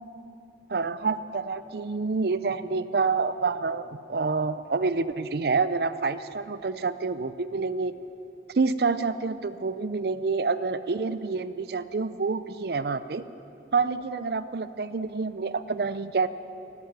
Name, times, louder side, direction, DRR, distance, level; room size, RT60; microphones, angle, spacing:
voice 1, 0.7-7.9 8.5-13.2 13.7-16.3, right 4 dB, 60° right, 14 dB, 0.5 m, -27 dB
13.0 x 11.0 x 8.7 m, 2.8 s
head